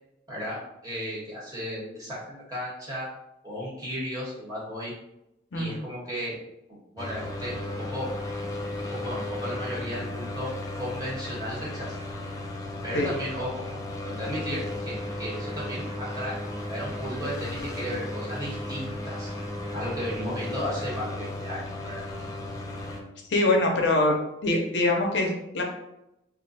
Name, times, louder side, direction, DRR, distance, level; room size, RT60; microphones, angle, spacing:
voice 1, 0.3-3.1 3.4-4.9 5.5-6.4 6.9-7.6 7.9-8.1 8.8-10.5 10.8-11.9 12.8-13.6 14.0-19.3 19.7-22.0, equal, 20° right, -7 dB, 1.0 m, -35 dB
sound 1, 7.0-23.0, left 1 dB, 20° left, 0.4 m, -35 dB
voice 2, 23.3-24.1 24.4-25.6, left 2 dB, 65° left, 1 dB, 0.6 m, -23 dB
2.5 x 2.1 x 3.9 m, 0.87 s
head